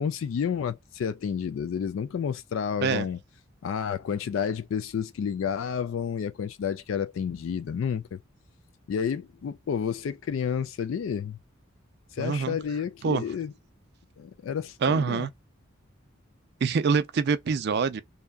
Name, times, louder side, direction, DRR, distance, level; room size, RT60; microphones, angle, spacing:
voice 1, 0.0-3.2 3.6-8.2 8.9-11.4 12.1-13.5 14.2-15.3, left 7 dB, 70° left, 0.3 m, -30 dB
voice 2, 12.2-12.6 13.0-13.2 14.8-15.3 16.6-18.0, right 5 dB, 55° right, 0.4 m, -25 dB
2.7 x 2.2 x 2.2 m
head